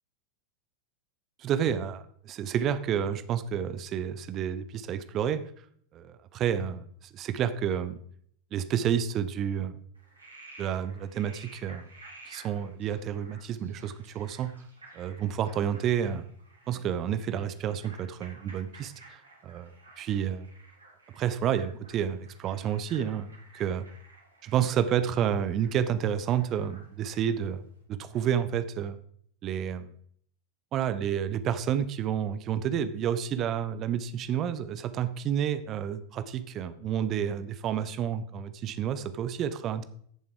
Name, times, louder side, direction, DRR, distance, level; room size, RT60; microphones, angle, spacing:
voice 1, 1.4-5.4 5.9-6.9 7.1-8.0 8.5-9.8 10.6-11.9 12.3-14.5 14.9-16.3 16.7-19.7 20.0-20.5 21.2-23.3 23.5-23.9 24.4-27.6 27.9-29.0 29.4-29.9 30.7-39.8, right 9 dB, 30° right, 12 dB, 1.0 m, -30 dB
Frog, 9.9-27.4, right 2 dB, 80° right, 4.3 m, -53 dB
14.5 x 7.1 x 4.9 m, 0.63 s
figure-of-eight pair, 90°, 0 cm